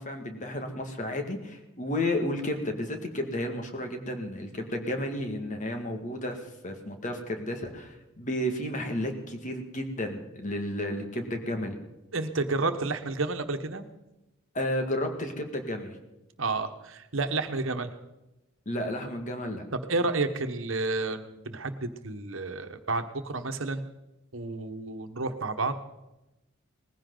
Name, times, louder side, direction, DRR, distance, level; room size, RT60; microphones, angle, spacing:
voice 1, 0.0-11.8 14.5-16.0 18.7-19.6, left 1 dB, 40° left, 4 dB, 2.1 m, -32 dB
voice 2, 12.1-13.8 16.4-17.9 19.9-23.8 24.3-25.7, right 3 dB, 70° right, 7 dB, 1.3 m, -30 dB
20.0 x 15.5 x 4.0 m, 0.96 s
head